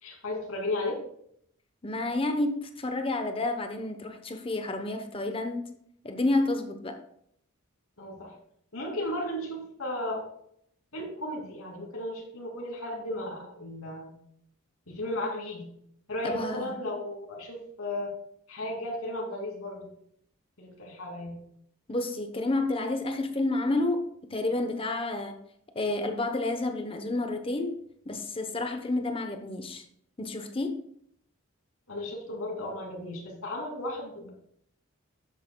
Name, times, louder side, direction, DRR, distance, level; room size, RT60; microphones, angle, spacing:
voice 1, 0.0-1.0 8.0-8.3 8.7-10.2 10.9-14.1 14.9-15.7 16.1-18.1 18.5-19.9 20.6-21.4 31.9-34.3, left 1 dB, 90° left, -1 dB, 2.7 m, -35 dB
voice 2, 1.8-5.6 6.0-7.0 16.2-16.7 21.9-24.0 24.3-25.4 25.7-27.8 28.1-29.8 30.2-30.8, left 2 dB, 25° left, 7 dB, 0.8 m, -30 dB
12.0 x 8.6 x 2.3 m, 0.68 s
head